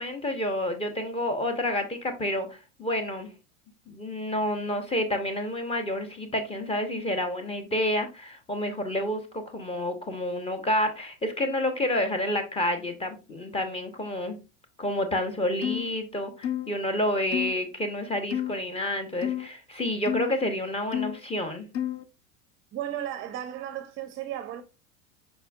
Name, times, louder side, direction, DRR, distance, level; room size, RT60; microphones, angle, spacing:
voice 1, 0.0-3.3 3.9-14.4 14.8-21.7, left 1 dB, 15° left, 0.8 m, -29 dB
sound 1, 15.6-15.9 16.4-16.7 17.3-17.5 18.3-18.6 19.2-19.5 20.1-20.3 20.9-21.2 21.7-22.0, left 10 dB, 40° left, 0.6 m, -30 dB
voice 2, 22.7-24.6, right 11 dB, 35° right, 0.5 m, -34 dB
5.2 x 4.3 x 2.3 m
supercardioid pair, 115°, 40 cm